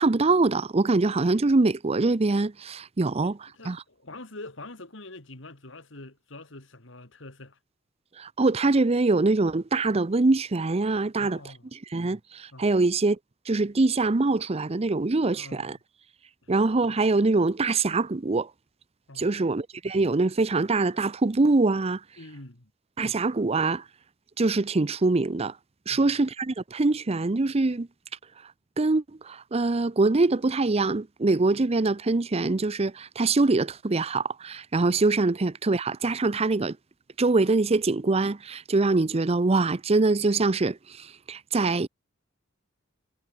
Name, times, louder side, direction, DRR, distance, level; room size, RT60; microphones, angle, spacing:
voice 1, 0.0-3.3 3.7-3.8 8.2-11.4 11.9-13.2 13.5-15.8 16.5-18.5 19.2-22.0 23.0-23.8 24.4-25.5 25.9-27.9 28.8-36.8 37.2-41.9, right 3 dB, 30° right, 0.6 m, -24 dB
voice 2, 3.2-7.6 11.2-11.7 12.5-12.7 15.3-15.7 16.4-16.5 19.1-19.4 22.2-22.7 25.9-26.2 34.9-35.1, left 2 dB, 65° left, 3.0 m, -45 dB
head